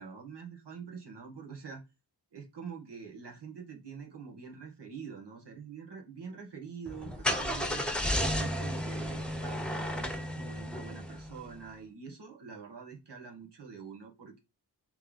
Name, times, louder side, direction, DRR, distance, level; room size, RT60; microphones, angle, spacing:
voice 1, 0.0-1.8 2.3-7.9 8.3-14.4, right 6 dB, 75° right, 2 dB, 1.8 m, -45 dB
Car / Engine starting, 6.9-11.5, left 1 dB, ahead, 0.9 m, -33 dB
6.9 x 3.4 x 4.1 m, 0.26 s
wide cardioid pair, 90°, 41 cm